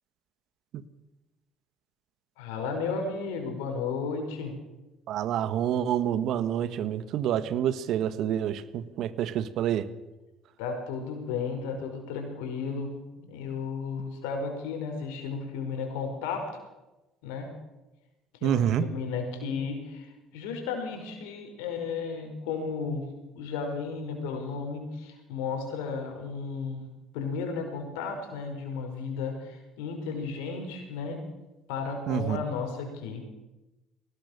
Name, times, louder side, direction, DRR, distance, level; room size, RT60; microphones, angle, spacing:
voice 1, 2.4-4.5 10.6-12.9 13.2-16.5 17.2-17.5 18.4-20.1 20.3-23.1 23.3-26.9 27.1-31.2 31.7-33.2, left 5 dB, 80° left, 4 dB, 5.4 m, -34 dB
voice 2, 5.1-9.9 18.4-18.9 32.1-32.4, right 10 dB, 65° right, 14 dB, 1.5 m, -27 dB
22.0 x 19.0 x 6.7 m, 1.1 s
hypercardioid pair, 60°, 0 cm